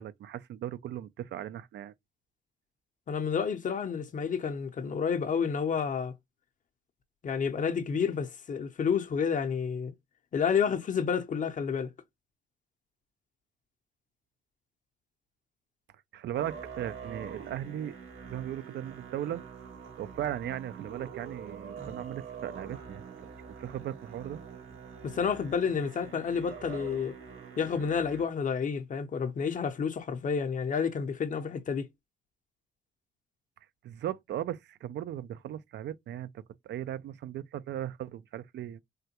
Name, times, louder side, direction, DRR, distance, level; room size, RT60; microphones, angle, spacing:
voice 1, 0.0-1.9 16.1-17.9 18.2-19.4 20.0-24.4 33.8-38.8, right 11 dB, 60° right, 0.4 m, -37 dB
voice 2, 3.1-6.1 7.2-9.9 10.3-11.9 25.0-27.1 27.6-31.9, left 6 dB, 40° left, 0.6 m, -30 dB
Musical instrument, 16.3-28.2, right 6 dB, 80° right, 1.4 m, -45 dB
3.5 x 2.2 x 2.8 m
cardioid pair, 90°, 20 cm